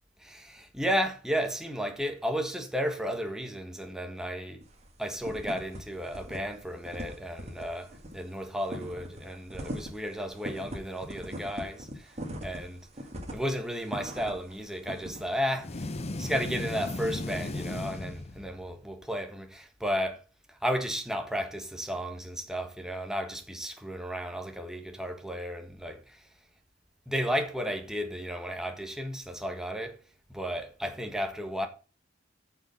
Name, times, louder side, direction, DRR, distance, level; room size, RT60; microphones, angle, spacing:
voice 1, 0.2-4.6 5.0-12.9 13.3-15.9 16.2-20.2 20.5-26.3 27.1-30.0 30.3-31.7, equal, 5° right, 1.5 m, -33 dB
sound 1, 4.6-4.9 5.2-5.8 6.0-6.4 6.6-14.5 14.9-15.2, equal, 35° right, 2.4 m, -40 dB
sound 2, 15.6-18.8, left 2 dB, 35° left, 0.7 m, -36 dB
7.4 x 6.1 x 7.1 m
head